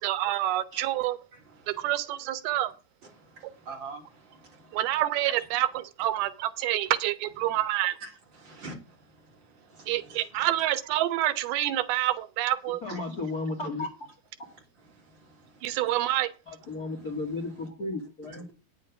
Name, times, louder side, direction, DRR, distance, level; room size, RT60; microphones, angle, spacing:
voice 1, 0.0-1.2 1.7-2.7 4.7-8.0 9.9-12.8 15.6-16.3, right 14 dB, 90° right, 14 dB, 2.9 m, -27 dB
voice 2, 1.3-1.9 3.0-5.0 5.4-5.5 7.4-7.6 8.0-10.5 12.9-13.2 13.6-13.7 14.4-15.9 16.6-17.7 18.3-18.5, right 3 dB, 30° right, 1 dB, 3.6 m, -48 dB
voice 3, 12.8-13.9 16.5-18.4, left 3 dB, 40° left, 5 dB, 1.3 m, -34 dB
9.6 x 7.6 x 6.9 m, 0.31 s
omnidirectional pair, 4.3 m